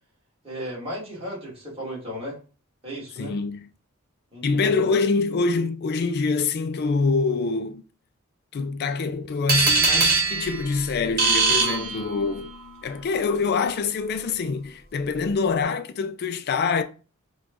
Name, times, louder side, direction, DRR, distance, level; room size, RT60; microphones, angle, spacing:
voice 1, 0.4-2.4 2.8-3.3 4.3-4.7, equal, 25° right, 2.0 m, -35 dB
voice 2, 3.2-3.7 4.4-7.8 8.5-12.5 12.8-16.8, left 4 dB, 50° left, 0.4 m, -25 dB
sound 1, 9.5-12.5, right 4 dB, 45° right, 1.2 m, -22 dB
4.8 x 2.3 x 3.6 m
head